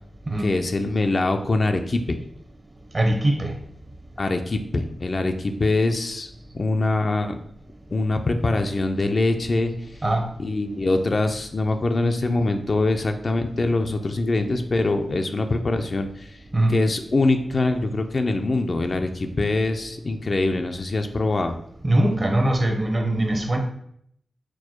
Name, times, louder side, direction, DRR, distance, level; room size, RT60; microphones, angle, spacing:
voice 1, 0.4-2.2 4.2-6.3 6.5-7.4 7.9-9.7 10.4-16.3 16.7-21.6, left 2 dB, 50° left, 0.4 m, -23 dB
voice 2, 2.9-3.5 10.0-10.2 16.5-16.7 21.8-23.6, right 1 dB, 40° right, 0.8 m, -21 dB
4.5 x 2.1 x 4.3 m
cardioid pair, 45°, 0 cm